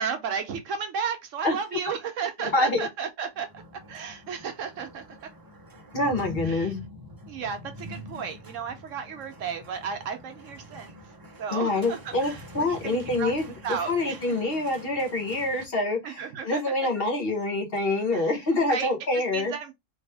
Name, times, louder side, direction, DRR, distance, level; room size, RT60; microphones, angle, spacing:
voice 1, 0.0-3.5 3.9-5.1 6.5-6.7 7.3-10.9 11.4-14.2 16.0-16.7 18.1-18.3 18.7-18.9 19.3-19.7, right 6 dB, 70° right, 1.0 m, -33 dB
voice 2, 2.4-2.9 5.9-6.8 11.5-13.5 13.9-19.5, left 2 dB, 45° left, 1.2 m, -26 dB
sound 1, 3.3-15.6, left 1 dB, 25° right, 0.5 m, -44 dB
3.0 x 2.7 x 3.3 m
omnidirectional pair, 1.4 m